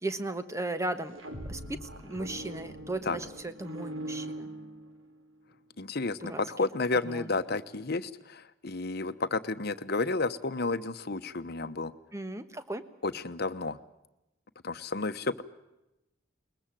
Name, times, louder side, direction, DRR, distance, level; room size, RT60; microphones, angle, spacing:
voice 1, 0.0-1.2 1.5-4.5 6.2-6.4 7.0-7.3 12.1-12.8, right 2 dB, 15° right, 10 dB, 1.3 m, -36 dB
sound 1, 1.0-5.2, right 1 dB, 85° right, 3.9 m, -41 dB
voice 2, 5.8-11.9 13.0-13.8 14.6-15.4, left 3 dB, 55° left, 10 dB, 1.1 m, -31 dB
21.5 x 21.0 x 7.6 m, 0.92 s
head